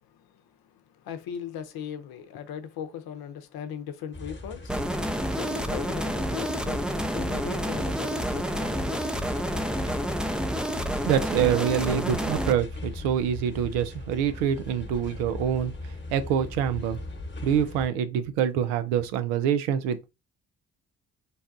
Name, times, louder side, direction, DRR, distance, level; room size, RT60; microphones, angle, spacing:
voice 1, 0.0-9.3, left 8 dB, 65° left, 0.7 m, -39 dB
sound 1, 4.1-17.9, left 2 dB, 30° left, 1.1 m, -39 dB
sound 2, 4.7-12.5, equal, ahead, 0.5 m, -29 dB
voice 2, 11.0-15.7 16.1-17.0 17.4-20.1, right 9 dB, 85° right, 0.5 m, -25 dB
4.0 x 2.2 x 2.5 m
hypercardioid pair, 45°, 39 cm